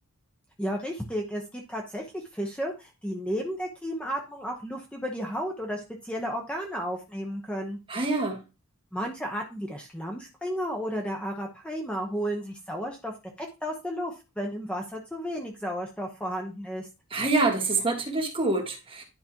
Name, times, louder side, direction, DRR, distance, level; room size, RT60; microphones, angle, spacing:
voice 1, 0.6-7.8 8.9-13.1 13.4-16.9, equal, 5° left, 1 dB, 0.9 m, -33 dB
voice 2, 7.9-8.4 17.1-19.0, right 3 dB, 25° right, 2 dB, 1.6 m, -26 dB
10.5 x 5.1 x 2.9 m, 0.28 s
head